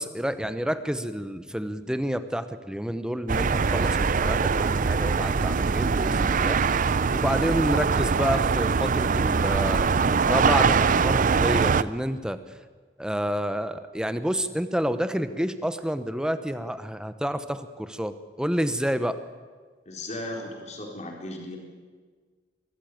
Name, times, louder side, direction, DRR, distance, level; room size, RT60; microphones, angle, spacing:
voice 1, 0.0-9.9 10.3-12.4 13.0-19.2, equal, 5° right, 11 dB, 0.9 m, -29 dB
sound 1, 3.3-11.8, right 5 dB, 50° right, 0.5 m, -23 dB
voice 2, 19.9-21.6, left 1 dB, 40° left, 1 dB, 4.0 m, -36 dB
23.0 x 13.5 x 9.2 m, 1.5 s
head